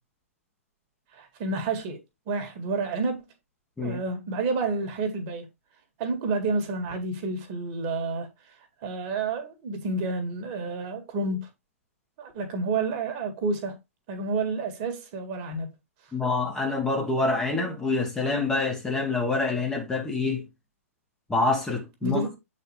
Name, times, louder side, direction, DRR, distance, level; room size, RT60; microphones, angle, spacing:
voice 1, 1.1-2.0 2.3-3.2 3.8-5.5 6.0-8.3 8.8-11.5 12.2-13.8 14.1-15.7 22.0-22.4, right 3 dB, 35° right, 1.8 m, -29 dB
voice 2, 16.1-20.4 21.3-22.2, left 3 dB, 10° left, 1.3 m, -26 dB
7.9 x 4.4 x 3.2 m
figure-of-eight pair, 115°, 8 cm